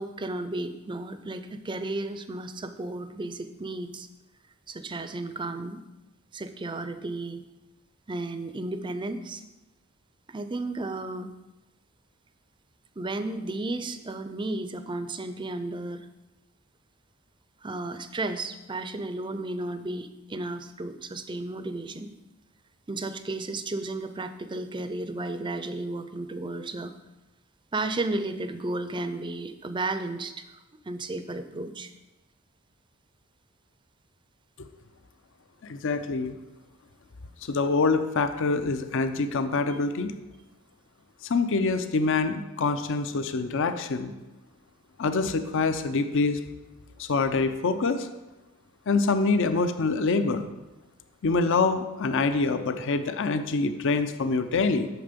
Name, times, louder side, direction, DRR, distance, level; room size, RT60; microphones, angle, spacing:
voice 1, 0.0-4.1 4.7-5.8 6.3-7.4 8.1-9.4 10.3-11.3 13.0-16.1 17.6-22.1 22.9-26.9 27.7-30.5 30.9-31.9, right 2 dB, 20° right, 10 dB, 0.5 m, -33 dB
voice 2, 35.6-36.3 37.4-40.1 41.2-44.1 45.0-46.4 47.0-48.1 48.9-50.5 51.2-54.9, left 3 dB, 60° left, 9 dB, 0.6 m, -25 dB
9.0 x 6.7 x 5.2 m, 1.0 s
head